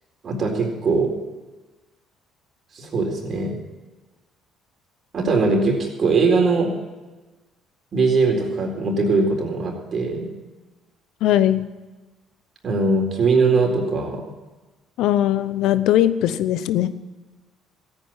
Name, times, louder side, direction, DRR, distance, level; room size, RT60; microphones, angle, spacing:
voice 1, 0.2-1.1 2.7-3.5 5.1-6.7 7.9-10.3 12.6-14.2, right 3 dB, 50° right, 2 dB, 4.0 m, -21 dB
voice 2, 11.2-11.7 15.0-16.9, left 12 dB, 70° left, 14 dB, 0.8 m, -19 dB
15.0 x 9.1 x 8.8 m, 1.2 s
hypercardioid pair, 60°, 0 cm